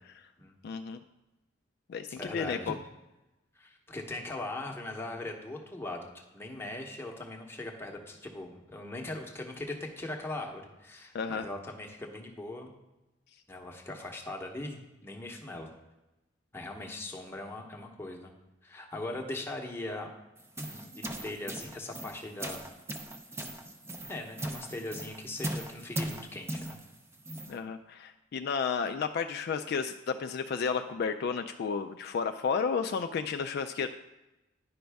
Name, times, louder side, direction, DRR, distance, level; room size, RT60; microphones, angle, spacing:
voice 1, 0.6-1.0 1.9-2.8 11.1-11.5 27.5-33.9, left 6 dB, 55° left, 7 dB, 0.3 m, -32 dB
voice 2, 2.1-2.7 3.6-12.7 13.5-15.7 16.5-18.3 18.6-20.1 20.6-22.8 24.1-26.8, left 2 dB, 10° left, 1 dB, 0.9 m, -40 dB
sound 1, 20.4-27.6, right 1 dB, 15° right, 0.5 m, -39 dB
10.0 x 5.2 x 3.4 m, 1.0 s
head